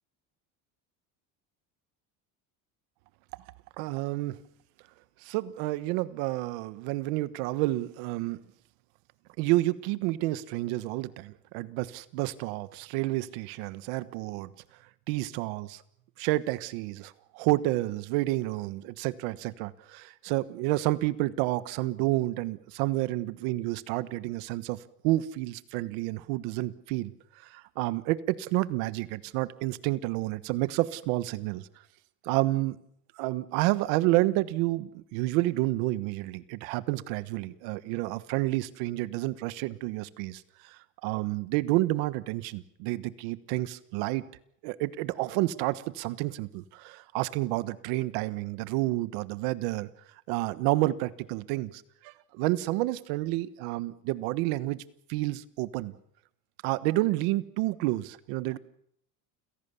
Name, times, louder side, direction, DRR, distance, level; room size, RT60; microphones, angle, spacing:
voice 1, 3.8-4.4 5.2-8.4 9.4-14.5 15.1-15.8 16.2-27.1 27.4-31.7 32.2-32.8 33.2-44.2 44.6-49.9 50.3-54.8 55.1-55.9 56.6-58.6, right 18 dB, 80° right, 15 dB, 1.3 m, -30 dB
29.5 x 17.0 x 7.0 m, 0.72 s
cardioid pair, 170°, 40 cm